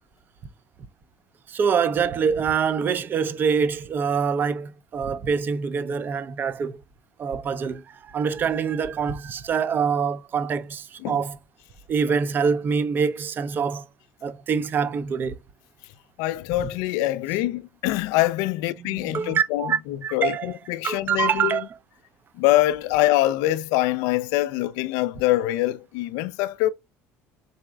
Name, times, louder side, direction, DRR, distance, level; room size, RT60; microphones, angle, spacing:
voice 1, 1.5-6.8 7.2-11.4 11.9-13.9 14.2-15.4 18.8-20.5 20.8-21.7, right 6 dB, 40° right, 0.5 m, -25 dB
voice 2, 16.2-21.6 22.4-26.7, left 16 dB, 80° left, 0.3 m, -24 dB
4.0 x 3.5 x 2.2 m
cardioid pair, 110°, 5 cm